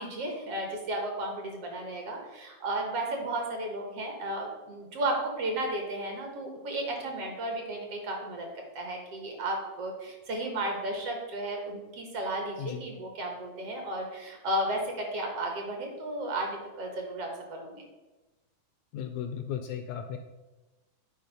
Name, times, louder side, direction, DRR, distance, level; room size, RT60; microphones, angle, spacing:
voice 1, 0.0-17.8, right 1 dB, 55° right, 2 dB, 2.0 m, -34 dB
voice 2, 18.9-20.2, left 9 dB, 80° left, 7 dB, 1.7 m, -35 dB
9.2 x 4.7 x 5.1 m, 1.1 s
omnidirectional pair, 3.5 m